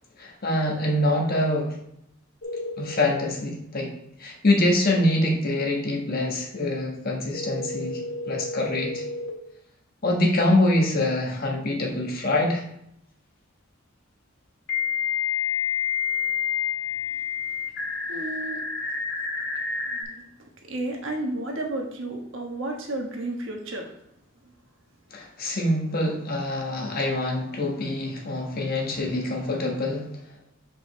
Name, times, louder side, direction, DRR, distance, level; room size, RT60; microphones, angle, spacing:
voice 1, 0.2-1.8 2.8-9.1 10.0-12.6 25.1-30.1, left 1 dB, 50° left, 0 dB, 1.4 m, -25 dB
sound 1, 2.4-3.3 7.3-9.3 11.9-12.0 14.7-20.0, left 6 dB, 70° left, 1.9 m, -29 dB
voice 2, 18.1-18.6 19.9-20.3 20.7-23.9, right 2 dB, 70° right, 1 dB, 1.3 m, -32 dB
6.9 x 5.2 x 3.2 m, 0.77 s
head